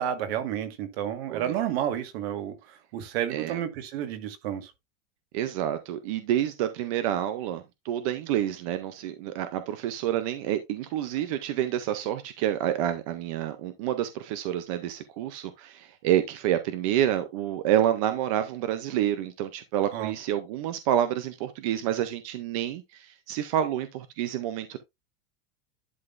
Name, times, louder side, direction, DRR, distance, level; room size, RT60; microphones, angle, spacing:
voice 1, 0.0-4.7 19.9-20.1, right 10 dB, 50° right, 1.6 m, -31 dB
voice 2, 5.3-24.8, right 11 dB, 30° right, 0.4 m, -28 dB
11.0 x 5.9 x 2.4 m
supercardioid pair, 180°, 39 cm